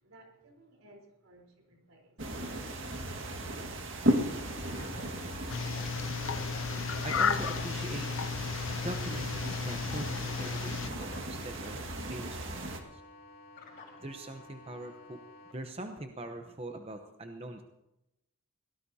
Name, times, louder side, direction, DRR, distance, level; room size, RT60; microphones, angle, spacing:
voice 1, 0.0-4.6 13.0-13.1, right 1 dB, 80° right, 4.1 m, -59 dB
sound 1, 2.2-12.8, right 1 dB, 60° right, 1.9 m, -36 dB
sound 2, 4.6-15.5, left 2 dB, 45° left, 4.4 m, -51 dB
sound 3, 5.5-10.9, left 6 dB, 65° left, 0.6 m, -34 dB
voice 2, 7.0-8.1 8.8-13.0 14.0-15.2 15.5-17.6, right 1 dB, 30° right, 0.9 m, -42 dB
23.5 x 17.5 x 2.8 m
head